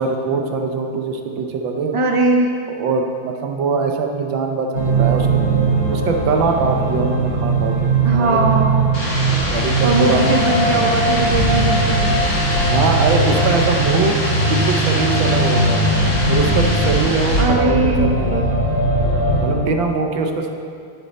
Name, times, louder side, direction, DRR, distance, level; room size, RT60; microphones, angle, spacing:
voice 1, 0.0-2.0 2.8-5.3 5.9-8.5 9.5-10.3 12.7-14.2 14.5-15.8 16.3-18.6 19.4-20.5, right 4 dB, 80° right, 3 dB, 1.6 m, -22 dB
voice 2, 1.9-2.5 8.0-8.8 9.8-12.0 17.4-18.5, right 2 dB, 25° right, 1 dB, 0.6 m, -19 dB
sound 1, 4.7-19.5, right 2 dB, 50° left, 3.1 m, -19 dB
sound 2, 8.9-17.4, left 1 dB, 65° left, 3.2 m, -24 dB
11.0 x 10.5 x 4.1 m, 2.3 s
omnidirectional pair, 2.1 m